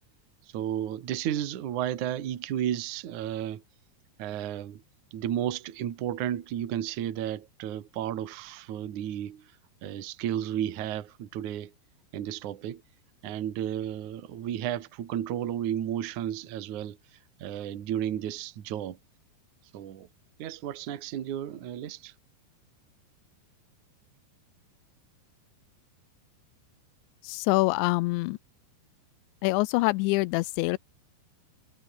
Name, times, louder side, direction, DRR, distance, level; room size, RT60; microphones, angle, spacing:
voice 1, 0.5-3.6 4.2-4.8 5.1-9.5 9.8-11.7 12.1-12.8 13.2-17.0 17.4-19.0 19.7-20.1 20.4-22.1, right 10 dB, 55° right, 2.6 m, -33 dB
voice 2, 27.2-28.4 29.4-30.8, left 22 dB, 85° left, 2.9 m, -25 dB
omnidirectional pair, 5.3 m